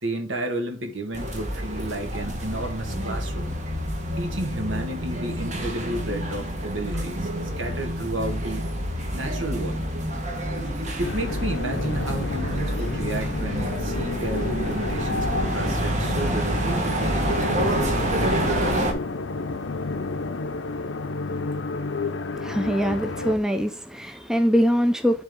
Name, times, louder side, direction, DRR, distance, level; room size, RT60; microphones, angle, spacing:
voice 1, 0.0-3.6 4.1-7.3 7.6-8.7 9.1-9.8 11.0-17.3 18.1-18.9, right 1 dB, 80° right, 1.7 m, -31 dB
sound 1, 1.1-18.9, right 1 dB, 40° right, 1.4 m, -28 dB
sound 2, 11.0-23.4, left 3 dB, 70° left, 0.7 m, -30 dB
voice 2, 22.3-25.2, equal, 5° right, 0.5 m, -23 dB
10.0 x 3.6 x 3.7 m
head